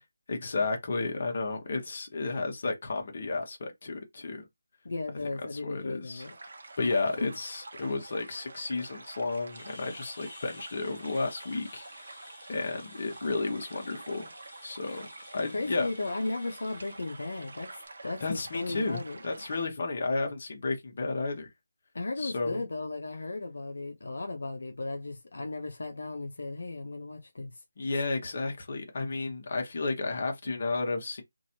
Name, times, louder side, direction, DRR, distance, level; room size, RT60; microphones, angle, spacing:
voice 1, 0.3-4.4 5.2-6.2 6.8-14.3 14.6-15.9 18.2-21.5 22.2-22.6 27.8-31.2, left 3 dB, 40° left, 1.1 m, -32 dB
voice 2, 4.8-6.4 6.8-6.9 15.5-19.2 21.9-27.5 27.9-28.0, left 2 dB, 70° left, 0.8 m, -36 dB
sound 1, 6.2-19.7, right 3 dB, 60° right, 0.9 m, -48 dB
sound 2, 9.5-17.9, left 2 dB, 25° left, 1.4 m, -53 dB
3.0 x 2.6 x 2.8 m
figure-of-eight pair, 170°, 0 cm